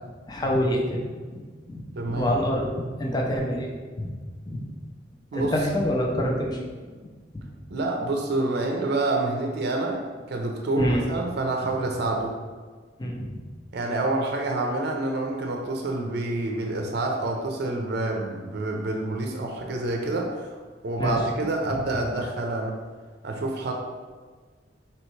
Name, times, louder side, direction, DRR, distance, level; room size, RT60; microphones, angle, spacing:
voice 1, 0.3-1.0 1.3-1.8 2.1-3.7 4.0-4.1 4.5-4.7 5.3-6.6 10.8-11.0 13.0-13.4 21.0-21.2, equal, 20° left, 0 dB, 0.4 m, -26 dB
voice 2, 2.0-2.3 5.3-5.5 7.7-10.0 10.3-12.4 13.7-20.6 20.8-22.8 23.2-23.7, right 2 dB, 60° right, 1 dB, 0.5 m, -27 dB
4.3 x 2.9 x 3.1 m, 1.5 s
head